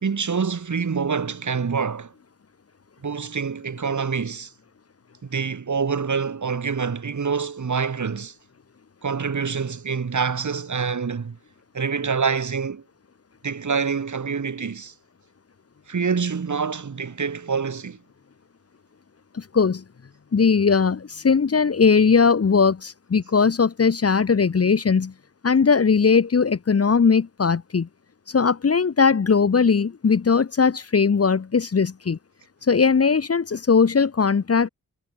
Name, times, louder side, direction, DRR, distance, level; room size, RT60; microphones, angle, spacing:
voice 1, 0.0-2.1 3.0-4.5 5.2-8.3 9.0-11.4 11.7-12.8 13.4-14.9 15.9-18.0, right 5 dB, 55° right, 4.1 m, -26 dB
voice 2, 19.3-19.8 20.3-25.1 25.4-27.9 28.3-32.2 32.7-34.7, left 5 dB, 40° left, 1.3 m, -19 dB
wide cardioid pair, 145°, 35 cm